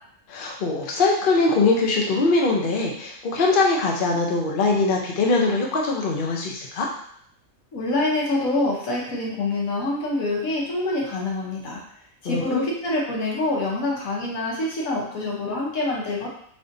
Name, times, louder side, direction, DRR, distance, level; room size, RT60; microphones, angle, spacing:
voice 1, 0.3-6.9 12.2-12.7, left 3 dB, 50° left, -1 dB, 0.7 m, -22 dB
voice 2, 7.7-11.8 12.2-16.3, left 2 dB, 75° left, -3 dB, 1.4 m, -26 dB
3.9 x 3.5 x 2.6 m, 0.67 s
omnidirectional pair, 1.5 m